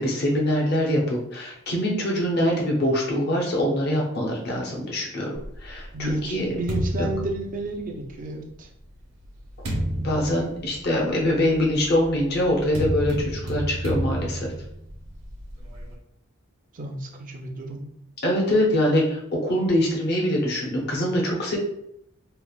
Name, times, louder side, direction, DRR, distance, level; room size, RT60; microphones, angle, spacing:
voice 1, 0.0-6.6 7.0-7.1 10.0-14.5 18.2-21.6, left 1 dB, 50° left, -2 dB, 0.6 m, -24 dB
sound 1, 5.3-8.2 8.9-15.9, right 1 dB, 80° right, 0.9 m, -31 dB
voice 2, 5.9-8.7 16.7-17.9, right 1 dB, 40° right, 2 dB, 0.4 m, -32 dB
3.2 x 2.0 x 2.3 m, 0.75 s
head